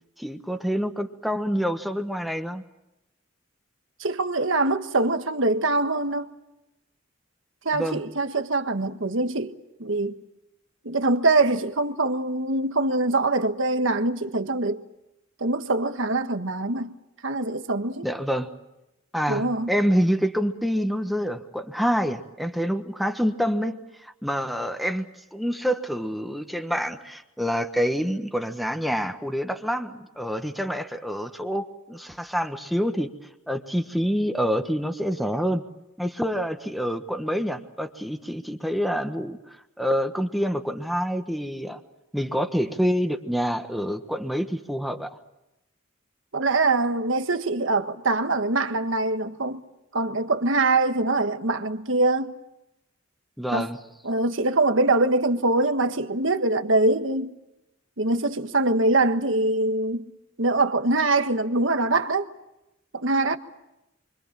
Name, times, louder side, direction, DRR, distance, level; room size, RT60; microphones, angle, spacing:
voice 1, 0.2-2.6 7.7-8.0 18.0-18.5 19.1-25.0 25.3-33.1 33.5-35.6 36.0-41.8 42.1-45.1 53.4-53.8, equal, ahead, 1.3 m, -27 dB
voice 2, 4.0-6.3 7.6-10.2 10.8-14.8 15.4-16.9 17.2-18.1 19.3-19.7 46.3-49.6 49.9-52.3 53.5-53.7 54.0-57.3 58.0-60.0 60.4-62.3 62.9-63.4, right 2 dB, 65° right, 1.5 m, -23 dB
28.5 x 25.0 x 7.5 m
head